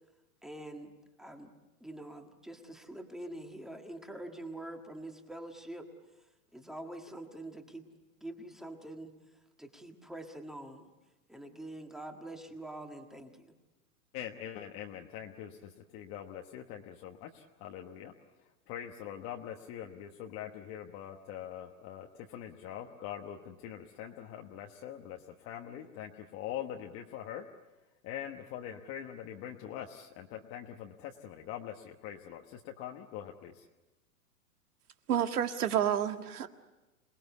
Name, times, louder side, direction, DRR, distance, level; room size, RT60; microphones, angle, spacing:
voice 1, 0.4-0.9 1.2-1.5 1.8-5.9 6.5-7.9 8.2-9.1 9.6-10.9 11.3-13.5, right 1 dB, ahead, 1.6 m, -45 dB
voice 2, 14.1-18.1 18.7-27.5 28.0-33.6, left 10 dB, 30° left, 1.2 m, -43 dB
voice 3, 35.1-36.5, right 9 dB, 85° right, 1.9 m, -29 dB
27.5 x 19.5 x 8.3 m
hypercardioid pair, 145°, 44 cm